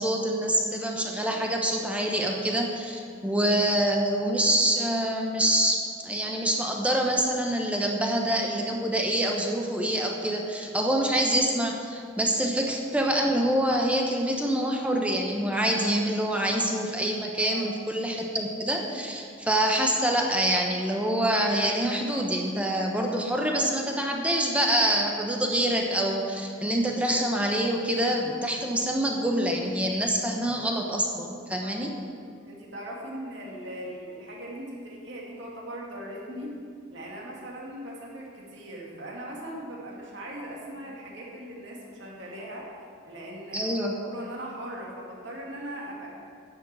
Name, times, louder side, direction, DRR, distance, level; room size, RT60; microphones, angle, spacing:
voice 1, 0.0-5.8 6.0-31.9 43.5-43.9, right 1 dB, 5° right, 1 dB, 0.9 m, -26 dB
voice 2, 3.1-3.4 17.5-17.6 31.6-31.8 32.5-42.7 43.0-43.7 44.0-46.1, right 1 dB, 60° right, -3 dB, 2.2 m, -39 dB
10.0 x 7.2 x 7.6 m, 2.3 s
head